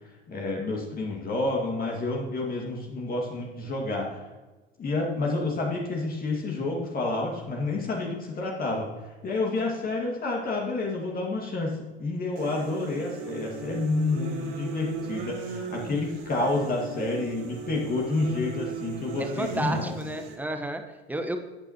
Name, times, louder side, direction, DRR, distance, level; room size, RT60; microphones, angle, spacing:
voice 1, 0.3-4.2 4.8-8.9 9.2-19.9, left 2 dB, 30° left, -1 dB, 2.1 m, -29 dB
sound 1, 12.4-20.3, right 5 dB, 50° right, 2.2 m, -37 dB
voice 2, 19.2-21.4, right 2 dB, 5° right, 6 dB, 1.2 m, -32 dB
15.0 x 8.9 x 3.0 m, 1.2 s
figure-of-eight pair, 70°, 29 cm